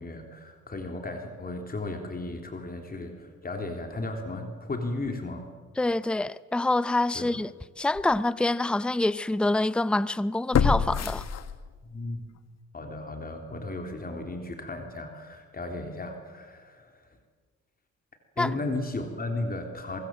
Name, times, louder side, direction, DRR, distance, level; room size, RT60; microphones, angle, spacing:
voice 1, 0.0-5.5 7.1-7.4 11.8-12.3 12.7-17.2 18.4-20.0, left 2 dB, 30° left, 3.6 m, -35 dB
voice 2, 5.8-11.3 18.4-18.5, left 2 dB, 5° left, 0.6 m, -26 dB
sound 1, 7.2-7.4 8.0-8.1 10.5-12.0 12.4-12.5, left 6 dB, 60° left, 1.6 m, -26 dB
23.5 x 23.0 x 7.9 m
cardioid pair, 90°, 30 cm